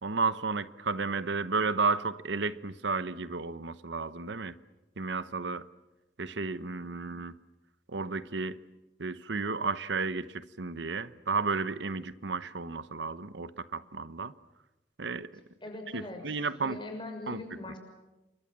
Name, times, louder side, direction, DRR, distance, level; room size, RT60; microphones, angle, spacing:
voice 1, 0.0-4.6 5.0-5.7 6.2-7.3 7.9-8.6 9.0-14.3 15.0-15.3 15.9-16.8 17.3-17.4, right 4 dB, 75° right, 1.0 m, -32 dB
voice 2, 15.6-17.8, left 2 dB, 25° left, 6.4 m, -42 dB
29.0 x 23.5 x 7.5 m
head